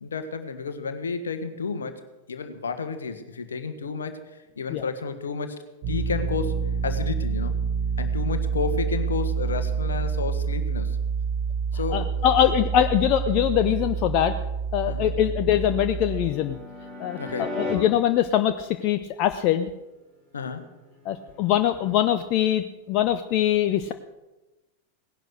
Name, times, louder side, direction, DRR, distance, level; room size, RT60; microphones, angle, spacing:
voice 1, 0.0-2.0 2.3-5.6 5.9-7.5 8.0-11.0 11.7-12.5 14.9-15.1 17.2-17.5 20.3-20.7, left 5 dB, 70° left, 10 dB, 1.5 m, -31 dB
sound 1, 5.8-16.3, right 6 dB, 45° right, 3.4 m, -28 dB
voice 2, 11.9-14.4 14.7-16.6 17.0-19.7 21.1-23.9, left 11 dB, 40° left, 9 dB, 0.7 m, -23 dB
sound 2, 14.9-17.7 20.7-22.0, left 1 dB, 25° right, 5.3 m, -38 dB
18.0 x 11.0 x 6.6 m, 1.0 s
figure-of-eight pair, 90°, 0 cm